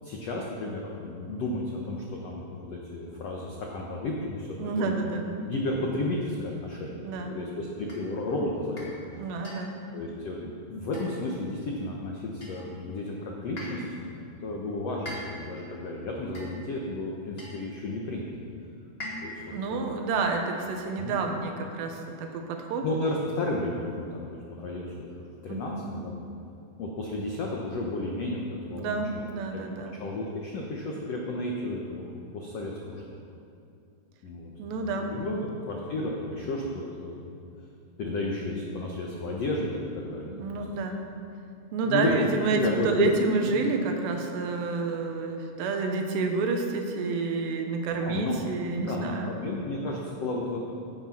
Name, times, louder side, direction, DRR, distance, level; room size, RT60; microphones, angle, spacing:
voice 1, 0.0-5.1 5.4-8.9 9.9-18.3 19.2-20.0 21.0-21.2 22.8-26.1 26.8-29.2 29.5-29.6 30.0-32.0 32.3-33.0 34.2-35.4 35.7-37.2 38.0-40.6 41.8-43.1 43.7-43.8 48.0-48.4 48.8-50.6, left 2 dB, 85° left, -2 dB, 1.4 m, -32 dB
voice 2, 4.6-5.2 7.0-7.4 9.2-9.7 19.5-22.8 25.5-25.8 28.7-30.0 34.6-35.4 40.3-41.0 41.7-49.4, right 4 dB, 90° right, 3 dB, 3.3 m, -29 dB
sound 1, 7.9-8.1 8.8-9.0 9.4-9.8 10.9-11.4 12.4-12.8 13.6-13.9 15.1-15.6 16.3-16.7 17.4-17.7 19.0-19.5, left 1 dB, 20° left, 1.6 m, -41 dB
16.0 x 8.7 x 5.9 m, 2.5 s
omnidirectional pair, 4.8 m